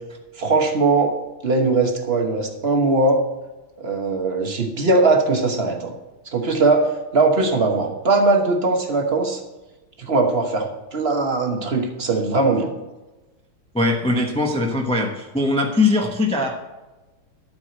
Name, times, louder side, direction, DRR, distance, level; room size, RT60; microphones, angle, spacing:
voice 1, 0.4-1.2 1.4-3.2 3.8-5.9 6.3-9.4 10.0-12.7, right 3 dB, 40° right, 4 dB, 1.0 m, -20 dB
voice 2, 13.7-16.6, left 2 dB, 5° left, 0 dB, 0.5 m, -21 dB
12.0 x 4.9 x 7.6 m, 1.1 s
omnidirectional pair, 2.3 m